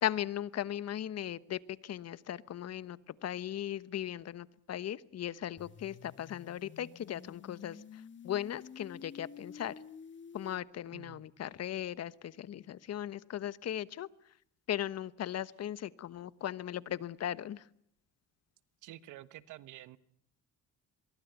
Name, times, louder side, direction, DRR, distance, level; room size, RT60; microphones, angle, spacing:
voice 1, 0.0-9.7 10.3-14.1 14.7-17.7, left 11 dB, 55° left, 17 dB, 1.2 m, -38 dB
sound 1, 5.6-10.6, left 6 dB, 40° left, 1.6 m, -51 dB
voice 2, 10.9-11.2 18.8-20.0, right 15 dB, 80° right, 16 dB, 1.3 m, -49 dB
24.0 x 22.5 x 8.2 m, 0.72 s
cardioid pair, 85°, 30 cm